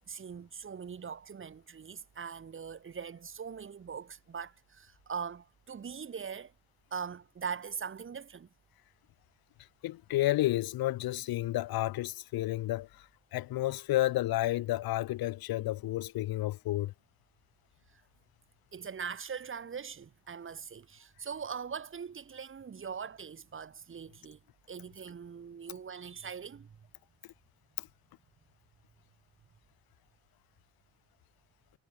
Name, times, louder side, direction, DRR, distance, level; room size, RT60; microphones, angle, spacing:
voice 1, 0.0-6.5 6.9-8.5 17.9-18.0 18.7-24.4 24.7-26.8, right 6 dB, 35° right, 1.8 m, -41 dB
voice 2, 9.8-12.9 13.3-16.9, left 16 dB, 75° left, 0.9 m, -31 dB
cardioid pair, 120°, 36 cm